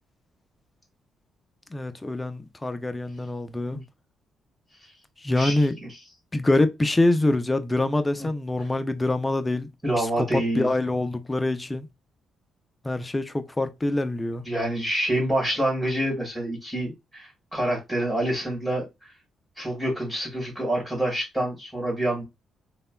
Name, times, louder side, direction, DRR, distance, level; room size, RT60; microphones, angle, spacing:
voice 1, 1.7-3.8 5.2-5.8 6.3-9.7 10.0-11.9 12.8-14.4, left 2 dB, 15° left, 0.4 m, -25 dB
voice 2, 5.4-6.0 8.2-8.3 9.8-10.7 14.5-18.9 19.6-22.2, right 1 dB, ahead, 1.8 m, -27 dB
3.2 x 2.2 x 2.2 m
cardioid pair, 90°, 0 cm